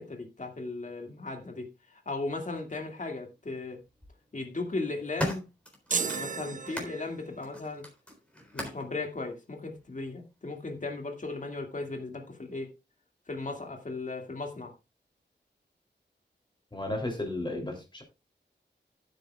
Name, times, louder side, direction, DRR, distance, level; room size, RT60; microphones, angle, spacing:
voice 1, 0.0-3.8 4.3-5.5 6.0-7.9 8.5-12.7 13.3-14.7, left 3 dB, 45° left, 2.2 m, -36 dB
sound 1, 2.5-2.7 3.8-4.1 4.7-7.0 7.4-8.9 9.8-9.9, left 1 dB, 5° left, 3.8 m, -38 dB
sound 2, 5.9-7.5, right 5 dB, 45° right, 0.6 m, -34 dB
voice 2, 16.7-18.0, left 1 dB, 25° left, 3.0 m, -33 dB
15.0 x 8.4 x 2.4 m
wide cardioid pair, 110°, 19 cm